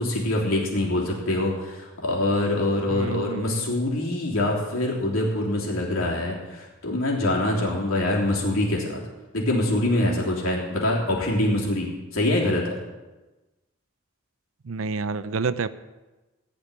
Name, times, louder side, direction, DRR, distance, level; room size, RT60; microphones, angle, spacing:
voice 1, 0.0-9.0 9.3-11.9 12.1-12.7, left 1 dB, 80° left, -2 dB, 3.2 m, -24 dB
voice 2, 2.9-3.6 14.6-15.7, right 4 dB, 70° right, 14 dB, 0.6 m, -29 dB
15.5 x 5.3 x 9.7 m, 1.1 s
head